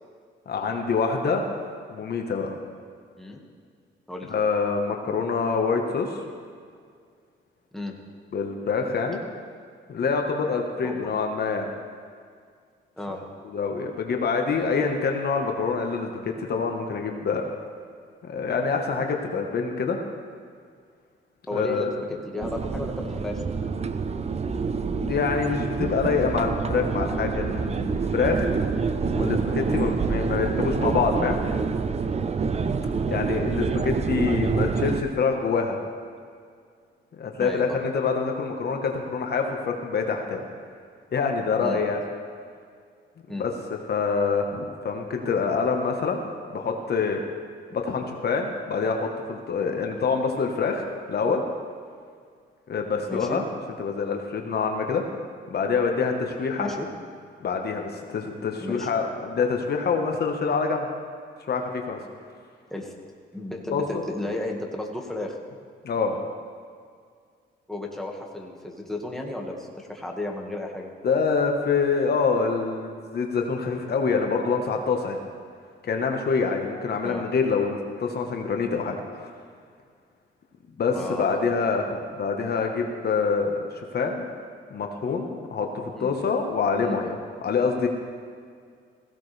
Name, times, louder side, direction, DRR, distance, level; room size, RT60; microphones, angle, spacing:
voice 1, 0.5-1.4 1.9-2.5 4.3-6.2 8.3-9.2 9.9-11.7 13.5-17.4 18.2-20.0 21.5-21.9 24.9-28.5 29.1-31.4 33.1-35.8 37.1-40.4 41.1-42.0 43.3-43.5 43.9-46.2 46.5-47.2 47.7-51.4 52.7-53.4 53.8-55.0 55.5-56.7 57.4-60.9 61.5-62.0 63.7-63.8 65.8-66.2 71.0-75.2 75.8-79.3 80.8-83.6 83.9-84.2 84.7-87.1 87.4-87.9, left 5 dB, 55° left, 2 dB, 1.4 m, -26 dB
voice 2, 21.5-23.4 33.1-33.4 37.4-37.8 41.6-41.8 43.3-43.5 53.1-53.4 56.6-56.9 58.6-58.9 62.7-62.9 63.3-65.4 67.7-70.9 77.0-77.2 80.9-81.5 85.9-86.1 86.8-87.0, left 1 dB, ahead, -1 dB, 1.9 m, -33 dB
sound 1, 22.4-35.0, right 5 dB, 30° right, 0.7 m, -27 dB
16.5 x 16.0 x 3.4 m, 2.1 s
cardioid pair, 90°, 20 cm